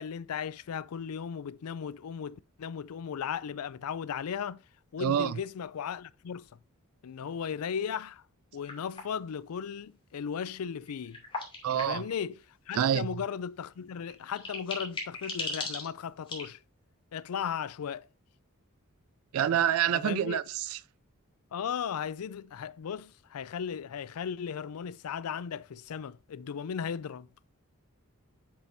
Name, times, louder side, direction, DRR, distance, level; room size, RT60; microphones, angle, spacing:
voice 1, 0.0-4.6 4.9-6.5 7.0-8.2 8.5-11.2 11.7-16.6 17.1-18.1 19.9-20.4 21.5-27.3, left 7 dB, 80° left, 0.4 m, -36 dB
voice 2, 5.0-5.3 11.6-12.0 12.7-13.1 19.3-20.8, right 9 dB, 70° right, 0.3 m, -27 dB
sound 1, 8.6-9.2 10.9-12.2 13.6-13.7 14.1-16.4, left 2 dB, 25° left, 2.5 m, -38 dB
7.6 x 5.8 x 2.7 m
head